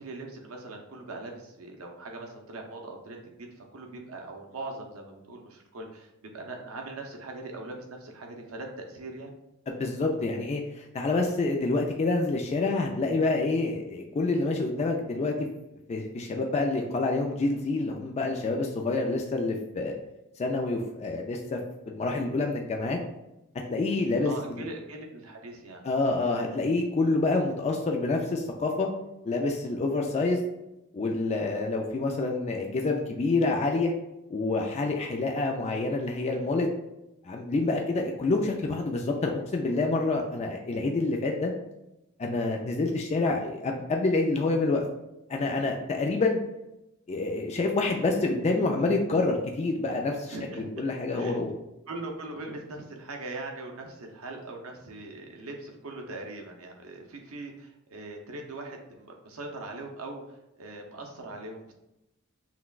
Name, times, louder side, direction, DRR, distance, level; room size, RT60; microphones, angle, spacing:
voice 1, 0.0-3.2 3.6-9.3 24.2-25.8 50.3-51.5 51.9-61.7, right 2 dB, 80° right, 2 dB, 0.7 m, -41 dB
voice 2, 9.7-15.5 15.9-19.9 20.4-21.6 21.9-23.0 23.7-24.7 25.8-28.9 29.2-30.4 30.9-33.9 34.3-36.7 37.3-41.5 42.2-44.8 45.3-46.4 47.1-51.6, left 3 dB, 30° left, 2 dB, 0.3 m, -27 dB
5.8 x 2.2 x 2.3 m, 0.91 s
head